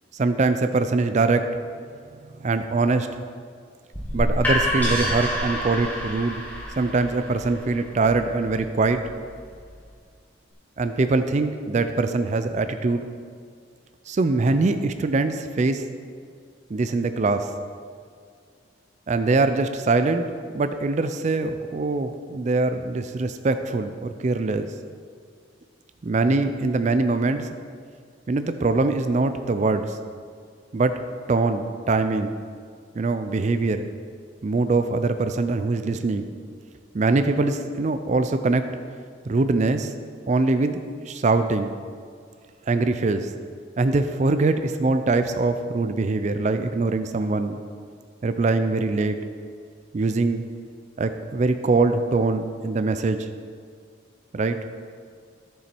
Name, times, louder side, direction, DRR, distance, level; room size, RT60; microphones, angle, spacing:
voice 1, 0.1-1.6 2.4-3.1 4.1-6.4 6.8-9.0 10.8-13.1 14.1-15.8 16.7-17.5 19.1-20.3 20.5-24.7 26.0-27.5 28.3-30.0 30.7-32.3 33.0-33.9 34.4-36.3 36.9-38.7 39.3-39.9 40.3-40.8 41.1-41.7 42.7-43.3 43.8-47.6 48.2-49.2 49.9-50.4 51.0-53.3 54.3-54.6, right 3 dB, 35° right, 9 dB, 0.4 m, -23 dB
sound 1, 3.9-9.7, equal, 10° left, 1.7 m, -28 dB
11.5 x 7.0 x 4.4 m, 2.1 s
head